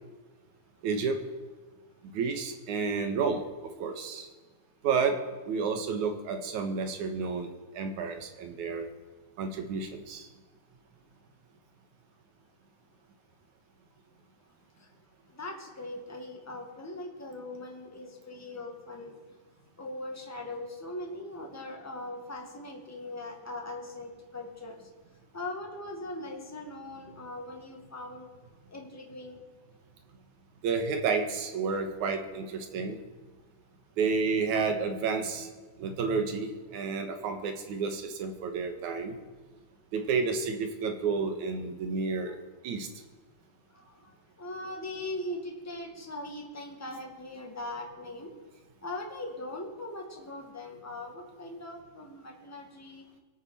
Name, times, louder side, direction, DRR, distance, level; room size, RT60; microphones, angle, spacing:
voice 1, 0.8-1.2 2.0-4.3 4.8-5.2 5.4-8.9 9.4-10.3 30.6-33.0 34.0-35.5 35.8-39.2 39.9-42.4 42.6-42.9, right 5 dB, 80° right, 6 dB, 2.8 m, -31 dB
voice 2, 15.3-19.2 19.8-24.8 25.3-28.3 28.7-29.4 42.3-42.4 43.7-44.1 44.4-48.3 48.8-53.0, left 2 dB, 5° left, 1 dB, 1.3 m, -40 dB
24.0 x 8.7 x 4.4 m, 1.4 s
omnidirectional pair, 3.4 m